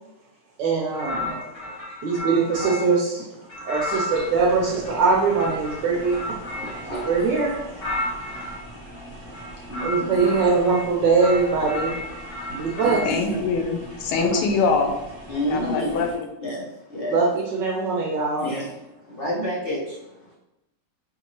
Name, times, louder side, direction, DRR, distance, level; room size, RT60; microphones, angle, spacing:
voice 1, 0.6-1.3 2.0-3.3 3.6-6.4 6.8-7.7 8.2-8.3 9.8-11.9 12.5-13.0 14.1-14.4 17.1-18.4, right 4 dB, 70° right, -1 dB, 1.1 m, -22 dB
sound 1, 0.9-3.0 3.5-8.6 9.3-10.9 11.2-13.1, left 1 dB, 65° left, 2.0 m, -33 dB
sound 2, 4.1-16.2, right 1 dB, 45° right, 0.8 m, -42 dB
voice 2, 6.6-7.3 8.3-8.5 9.7-10.3 12.8-13.4 15.3-16.0 16.4-17.2 18.4-18.6 18.9-20.3, equal, 40° left, -7 dB, 0.9 m, -30 dB
voice 3, 13.1-14.9 15.5-16.3, left 4 dB, 80° left, 4 dB, 1.4 m, -23 dB
5.1 x 2.7 x 2.9 m, 0.94 s
omnidirectional pair, 2.4 m